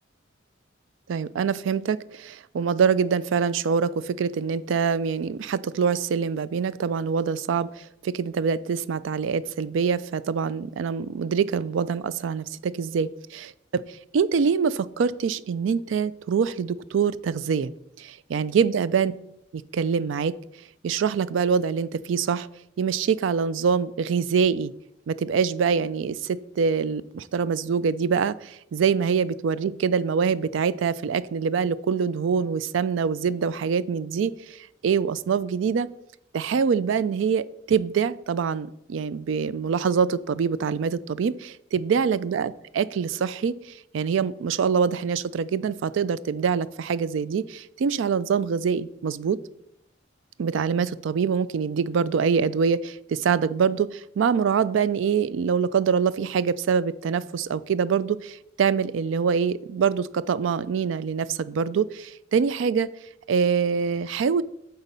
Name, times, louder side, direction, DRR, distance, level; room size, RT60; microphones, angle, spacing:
voice 1, 1.1-13.5 13.9-17.7 18.0-19.1 19.7-20.3 20.8-22.5 22.8-24.7 25.1-35.9 36.3-49.4 50.4-62.9 63.3-64.4, right 6 dB, 75° right, 17 dB, 0.3 m, -25 dB
8.2 x 4.0 x 5.4 m, 0.78 s
head